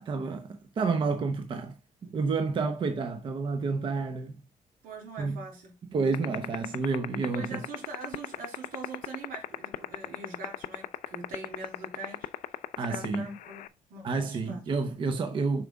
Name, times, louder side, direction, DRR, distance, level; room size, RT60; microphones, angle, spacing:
voice 1, 0.0-1.8 2.0-4.4 5.2-5.4 5.9-7.6 12.8-13.2 14.0-15.7, right 4 dB, 35° right, 0.8 m, -29 dB
voice 2, 4.8-5.8 6.1-6.3 7.2-12.6 12.9-14.6, right 4 dB, 85° right, 3.2 m, -43 dB
sound 1, 6.1-13.7, left 14 dB, 75° left, 0.5 m, -32 dB
7.3 x 5.2 x 3.6 m
cardioid pair, 175°, 14 cm